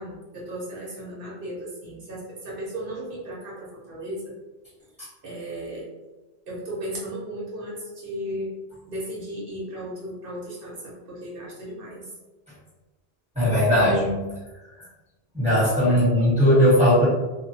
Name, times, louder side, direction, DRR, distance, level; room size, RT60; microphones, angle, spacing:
voice 1, 0.0-4.3 5.2-5.9 6.5-8.5 8.9-12.1 15.9-16.0, right 1 dB, 55° right, -5 dB, 1.0 m, -35 dB
voice 2, 13.3-14.2 15.3-17.1, equal, 5° right, -10 dB, 1.1 m, -18 dB
2.3 x 2.3 x 2.7 m, 1.1 s
omnidirectional pair, 1.1 m